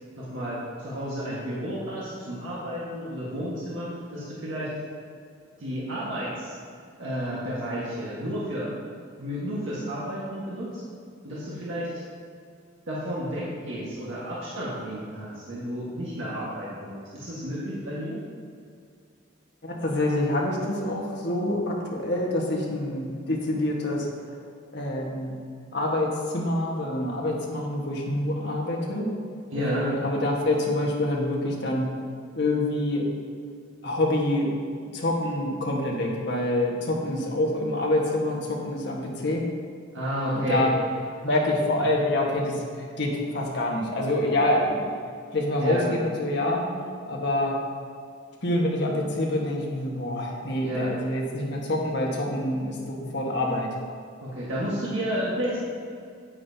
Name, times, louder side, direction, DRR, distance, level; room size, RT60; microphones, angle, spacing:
voice 1, 0.1-4.7 5.6-6.5 7.0-8.7 9.2-10.8 11.2-11.9 12.9-18.2 29.5-29.9 39.9-40.7 45.6-45.8 50.6-50.9 54.2-55.6, equal, 75° right, -7 dB, 1.6 m, -31 dB
voice 2, 19.6-24.4 24.7-25.3 25.7-29.1 29.5-31.9 32.4-33.1 33.8-34.6 34.9-39.4 40.3-40.7 41.2-42.6 43.0-44.9 45.3-46.6 47.1-47.6 48.4-53.7, left 1 dB, 55° left, -2 dB, 1.5 m, -26 dB
9.5 x 8.9 x 2.8 m, 2.3 s
head